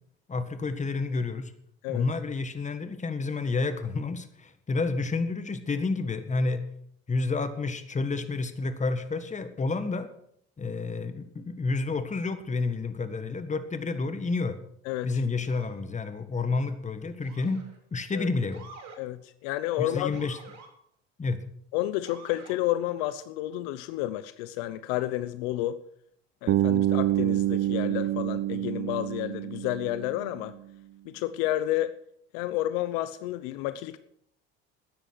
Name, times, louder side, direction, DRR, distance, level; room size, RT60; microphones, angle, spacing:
voice 1, 0.3-1.5 1.9-6.6 7.1-10.1 10.6-14.6 15.0-17.6 17.9-18.6 19.8-20.4 21.2-21.4, left 3 dB, 25° left, 10 dB, 1.7 m, -30 dB
voice 2, 14.8-15.2 18.1-18.3 19.0-20.1 21.7-25.8 26.4-30.6 31.0-31.9 32.3-34.0, left 14 dB, 75° left, 14 dB, 0.8 m, -30 dB
Motor vehicle (road) / Siren, 15.4-15.8 17.2-17.8 18.5-19.0 20.1-20.7 22.0-22.6, right 4 dB, 60° right, 3.5 m, -48 dB
Bass guitar, 26.5-30.4, right 14 dB, 40° right, 0.5 m, -27 dB
13.0 x 9.8 x 6.3 m, 0.71 s
hypercardioid pair, 75°, 31 cm